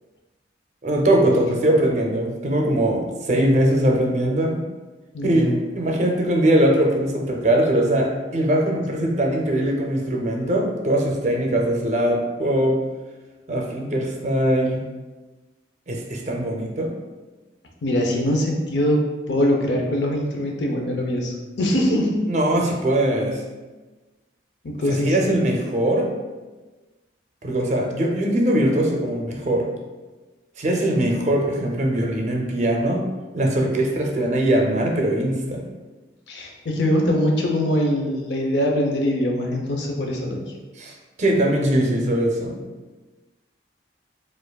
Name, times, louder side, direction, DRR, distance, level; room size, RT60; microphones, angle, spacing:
voice 1, 0.8-4.6 5.2-12.8 13.5-14.8 15.9-16.9 22.3-23.4 24.9-26.1 27.4-29.7 30.6-33.0 33.3-35.6 40.8-42.6, right 1 dB, 40° right, 1 dB, 0.5 m, -21 dB
voice 2, 5.1-5.6 17.8-19.0 19.3-22.2 24.6-25.3 36.3-40.4, left 1 dB, 70° left, 1 dB, 0.6 m, -22 dB
4.6 x 2.5 x 2.3 m, 1.2 s
head